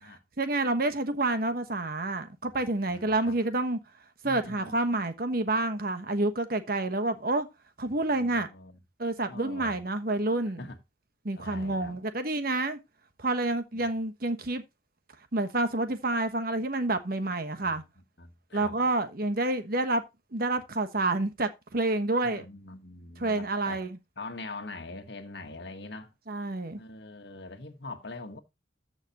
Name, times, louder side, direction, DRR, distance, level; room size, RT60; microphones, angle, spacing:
voice 1, 0.4-3.8 4.2-7.5 7.8-8.5 9.0-10.6 11.2-12.8 13.2-14.6 15.3-17.8 18.5-20.0 20.3-22.4 23.2-24.0 26.3-26.8, right 2 dB, 50° right, 1.3 m, -28 dB
voice 2, 2.9-3.3 4.2-4.8 8.1-8.8 9.3-9.8 10.6-10.8 11.4-12.0 13.7-13.9 17.6-17.8 18.2-18.7 22.2-23.8 24.2-26.1 26.8-28.4, left 2 dB, 65° left, 1.5 m, -43 dB
14.0 x 6.0 x 3.0 m
head